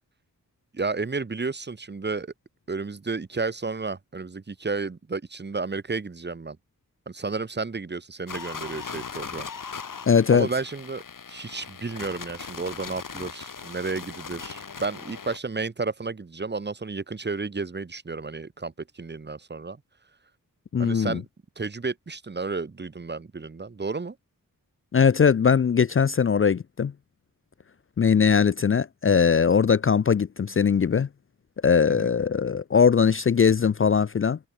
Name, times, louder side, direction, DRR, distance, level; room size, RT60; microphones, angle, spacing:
voice 1, 0.7-2.3 2.7-6.6 7.1-9.5 10.3-11.0 11.3-19.8 20.8-21.3 21.6-24.2 31.9-32.1, right 4 dB, 30° right, 1.1 m, -32 dB
sound 1, 8.3-15.4, left 5 dB, 65° left, 3.9 m, -39 dB
voice 2, 10.1-10.5 20.7-21.2 24.9-26.9 28.0-31.1 31.6-34.4, left 6 dB, 40° left, 0.5 m, -20 dB
wide cardioid pair, 115°, 34 cm